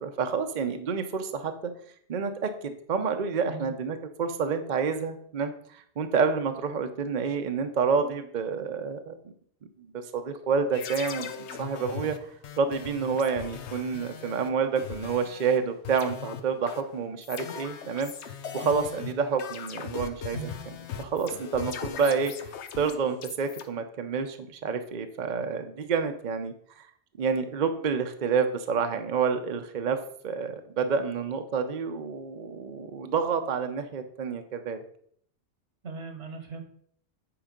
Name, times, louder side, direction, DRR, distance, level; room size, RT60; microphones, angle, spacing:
voice 1, 0.0-1.7 2.1-9.3 9.9-11.3 11.6-12.2 12.6-26.9 27.2-30.0 30.2-34.8, right 5 dB, 50° right, 7 dB, 0.7 m, -29 dB
sound 1, 10.7-15.6 15.8-23.6, left 7 dB, 80° left, 1.0 m, -39 dB
voice 2, 35.8-36.6, right 5 dB, 75° right, 5 dB, 1.6 m, -38 dB
8.7 x 4.7 x 5.1 m, 0.63 s
omnidirectional pair, 1.2 m